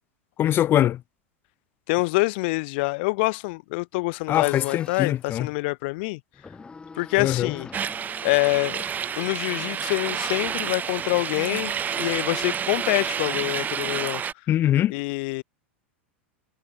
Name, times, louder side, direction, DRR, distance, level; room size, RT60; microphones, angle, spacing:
voice 1, 0.4-1.0 4.3-5.5 7.2-7.5 14.5-14.9, left 12 dB, 35° left, 0.5 m, -22 dB
voice 2, 1.9-6.2 6.9-7.7 8.2-8.8 9.2-14.2 14.9-15.4, left 25 dB, 55° left, 0.9 m, -26 dB
sound 1, 4.3-5.2 6.3-9.4, left 4 dB, 15° left, 1.4 m, -45 dB
sound 2, 7.7-14.3, right 8 dB, 25° right, 1.1 m, -29 dB
hypercardioid pair, 90°, 7 cm